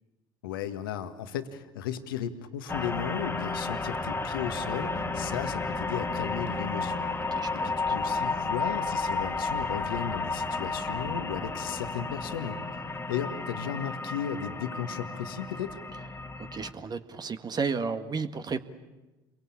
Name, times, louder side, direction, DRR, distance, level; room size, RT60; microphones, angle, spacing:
voice 1, 0.4-7.0 7.5-12.6 13.1-15.8, left 9 dB, 85° left, 9 dB, 1.6 m, -35 dB
sound 1, 2.7-16.7, left 3 dB, 20° left, 1.9 m, -32 dB
voice 2, 7.3-7.9 16.4-18.6, right 5 dB, 35° right, 9 dB, 1.8 m, -33 dB
28.5 x 22.5 x 8.7 m, 1.1 s
hypercardioid pair, 65°, 11 cm